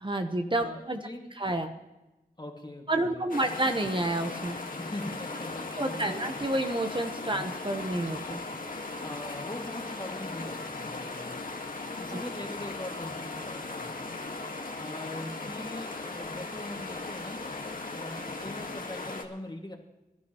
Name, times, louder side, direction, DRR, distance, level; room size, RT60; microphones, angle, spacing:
voice 1, 0.0-1.0 1.4-1.7 2.9-4.6 5.8-8.4 12.1-12.2, right 1 dB, 35° right, 5 dB, 1.0 m, -29 dB
voice 2, 0.6-1.5 2.4-3.6 4.8-6.5 7.3-7.5 9.0-11.4 12.0-14.1 14.8-17.5 17.9-19.8, left 1 dB, 30° left, 2 dB, 2.1 m, -42 dB
sound 1, 3.3-19.2, left 3 dB, 65° left, 1.7 m, -38 dB
23.5 x 12.5 x 3.0 m, 1.0 s
wide cardioid pair, 70°, 15 cm